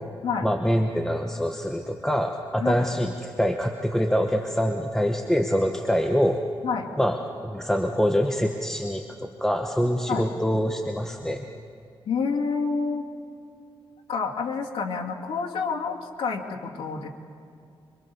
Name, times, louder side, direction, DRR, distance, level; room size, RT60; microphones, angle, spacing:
voice 1, 0.4-6.4 7.0-7.2 7.4-11.5, equal, 5° left, 3 dB, 1.1 m, -25 dB
voice 2, 12.1-13.0 14.1-17.1, left 5 dB, 85° left, -1 dB, 2.3 m, -28 dB
26.0 x 24.0 x 7.0 m, 2.4 s
wide cardioid pair, 120°, 9 cm